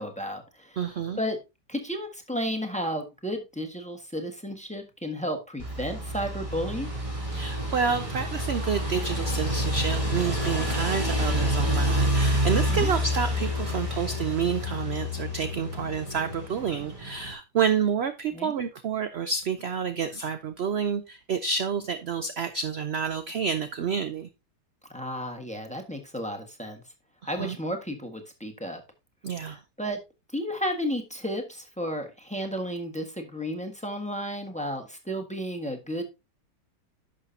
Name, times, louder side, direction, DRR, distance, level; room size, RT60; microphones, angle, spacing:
voice 1, 0.0-0.8 1.2-1.4 1.7-6.9 12.7-12.9 18.3-18.5 24.9-26.8 27.2-28.8 29.4-30.0 30.3-36.0, equal, 5° left, 5 dB, 1.2 m, -33 dB
voice 2, 0.8-1.2 7.3-24.3 27.2-27.6 29.2-29.6, right 6 dB, 65° right, 10 dB, 0.6 m, -29 dB
sound 1, 5.6-17.3, equal, 20° right, 3.2 m, -28 dB
11.0 x 6.6 x 2.7 m, 0.24 s
omnidirectional pair, 1.8 m